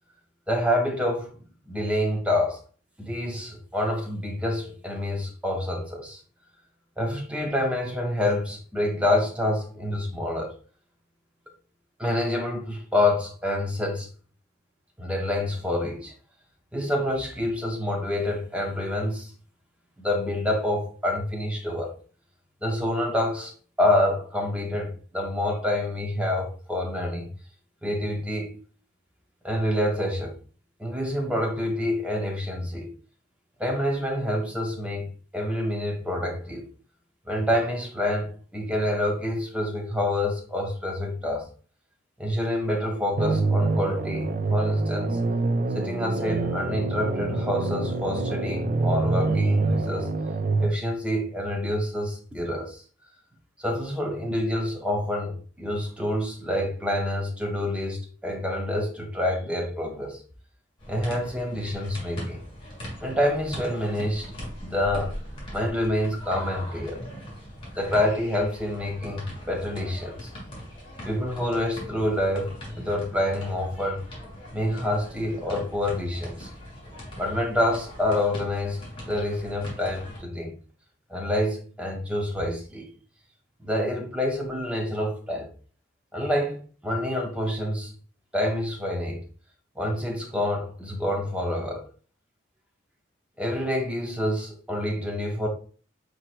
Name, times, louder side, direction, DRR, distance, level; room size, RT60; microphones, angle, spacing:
voice 1, 0.5-1.3 1.7-2.6 3.0-6.2 7.0-10.5 12.0-14.1 15.0-16.1 16.7-19.3 20.0-22.0 22.6-23.5 23.8-27.3 27.8-28.5 29.4-30.3 30.8-32.9 33.6-35.1 35.3-36.6 37.3-41.5 42.2-45.2 45.7-50.1 50.6-52.8 53.6-60.2 60.9-62.4 63.0-64.3 64.6-65.1 65.5-67.0 67.7-70.3 71.0-74.0 74.5-76.5 77.2-78.8 79.0-80.5 81.1-82.9 83.6-85.5 86.1-87.9 88.3-89.2 89.8-91.9 93.4-95.5, left 1 dB, 5° right, 0.8 m, -27 dB
sound 1, 43.2-50.7, right 3 dB, 45° right, 0.4 m, -26 dB
sound 2, 60.8-80.2, equal, 25° left, 1.7 m, -40 dB
4.5 x 4.5 x 2.6 m
head